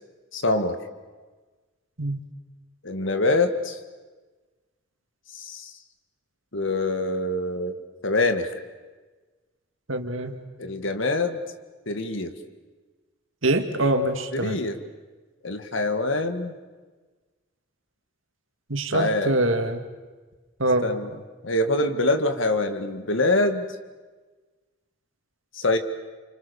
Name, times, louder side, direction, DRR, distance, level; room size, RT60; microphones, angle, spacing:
voice 1, 0.3-0.8 2.8-3.8 5.3-5.7 6.5-7.8 8.0-8.6 10.6-11.4 11.9-12.3 14.3-14.8 15.4-16.5 18.9-19.3 20.8-21.1 21.4-23.7 25.5-25.8, left 2 dB, 70° left, 8 dB, 1.9 m, -24 dB
voice 2, 9.9-10.4 13.4-14.6 18.7-19.9 20.6-20.9, right 2 dB, 80° right, 5 dB, 2.4 m, -24 dB
29.5 x 25.5 x 7.0 m, 1.3 s
head